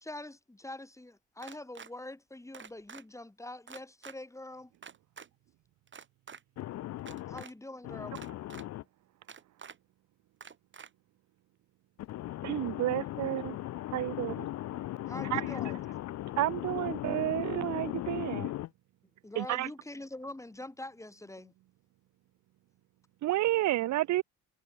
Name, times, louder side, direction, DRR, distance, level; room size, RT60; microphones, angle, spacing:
voice 1, 0.0-4.7 7.3-8.2 15.0-15.8 19.2-21.5, left 1 dB, 10° left, 2.6 m, -44 dB
sound 1, 1.4-1.9 2.5-3.0 3.7-4.2 4.8-5.3 5.9-6.4 7.0-7.5 8.2-8.6 9.3-9.8 10.4-10.9, right 6 dB, 40° right, 2.6 m, -47 dB
voice 2, 6.6-7.4 7.9-8.8 12.1-18.7, left 15 dB, 60° left, 0.5 m, -38 dB
voice 3, 12.4-13.6 13.9-14.5 15.3-15.4 16.4-18.5 19.4-19.7 23.2-24.2, right 15 dB, 65° right, 0.6 m, -30 dB
cardioid pair, 90°, 30 cm